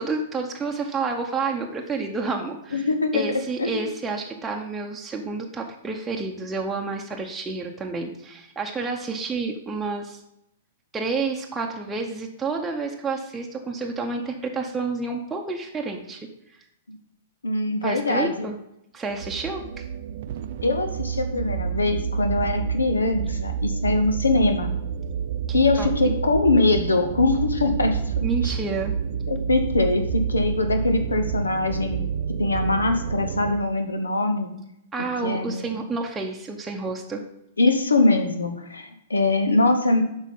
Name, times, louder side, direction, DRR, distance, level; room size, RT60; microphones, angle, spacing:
voice 1, 0.0-2.9 3.1-10.2 10.9-16.6 17.8-18.6 18.9-19.9 25.5-26.2 28.2-28.9 34.9-37.2, right 4 dB, 10° right, 0 dB, 0.8 m, -30 dB
voice 2, 2.7-3.9 16.9-17.0 17.4-18.5 20.6-24.7 25.5-28.0 28.4-28.5 29.3-32.0 32.4-34.5 35.2-35.7 37.6-40.0, left 2 dB, 85° left, 7 dB, 0.9 m, -22 dB
sound 1, 19.1-33.6, right 7 dB, 55° right, 0.5 m, -28 dB
8.2 x 5.4 x 3.6 m, 0.81 s
figure-of-eight pair, 110°, 0 cm